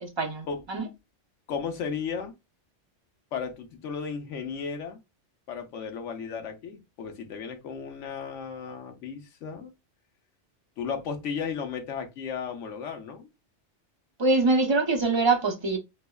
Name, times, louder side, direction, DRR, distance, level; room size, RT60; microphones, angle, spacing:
voice 1, 0.0-0.8 14.2-15.8, right 3 dB, 30° right, 0.5 m, -24 dB
voice 2, 1.5-2.3 3.3-5.0 5.5-9.7 10.8-13.3, left 6 dB, 85° left, 1.1 m, -34 dB
5.2 x 2.1 x 2.2 m
omnidirectional pair, 1.2 m